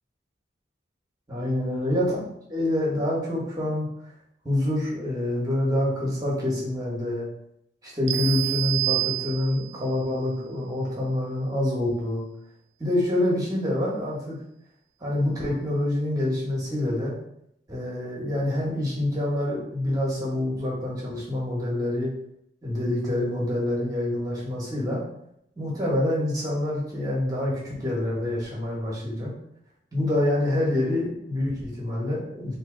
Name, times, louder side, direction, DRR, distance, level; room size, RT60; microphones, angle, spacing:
voice 1, 1.3-2.2 2.5-3.9 4.4-7.3 7.8-12.2 12.8-14.4 15.0-17.2 17.7-22.1 22.6-25.0 25.6-29.3 29.9-32.5, left 1 dB, 20° right, -5 dB, 1.0 m, -26 dB
sound 1, 8.1-9.8, right 18 dB, 85° right, 0.3 m, -27 dB
2.8 x 2.7 x 3.7 m, 0.76 s
head